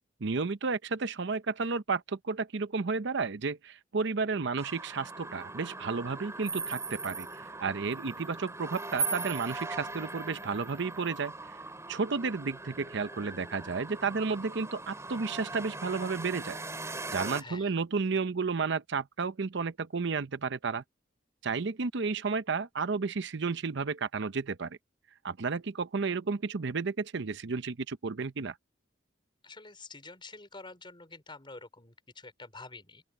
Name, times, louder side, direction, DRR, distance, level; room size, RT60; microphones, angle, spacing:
voice 1, 0.2-7.3 7.6-11.6 11.9-16.6 17.1-20.8 21.4-24.8 25.2-28.6, right 4 dB, 65° right, 0.7 m, -32 dB
sound 1, 4.6-17.4, right 4 dB, 15° right, 3.4 m, -39 dB
voice 2, 17.4-17.7 29.4-33.0, left 3 dB, 25° left, 4.8 m, -48 dB
open air
head